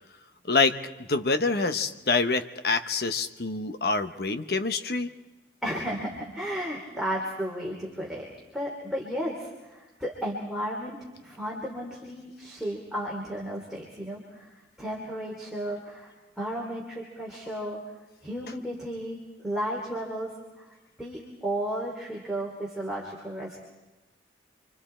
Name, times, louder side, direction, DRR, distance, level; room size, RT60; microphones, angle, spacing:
voice 1, 0.5-5.1, left 4 dB, 55° left, 9 dB, 0.9 m, -26 dB
voice 2, 5.6-8.3 8.5-11.0 11.2-14.5 14.8-16.1 16.4-17.8 18.2-19.2 19.4-20.3 20.6-20.7 21.0-23.6, equal, ahead, -4 dB, 2.9 m, -33 dB
29.0 x 24.5 x 4.4 m, 1.1 s
head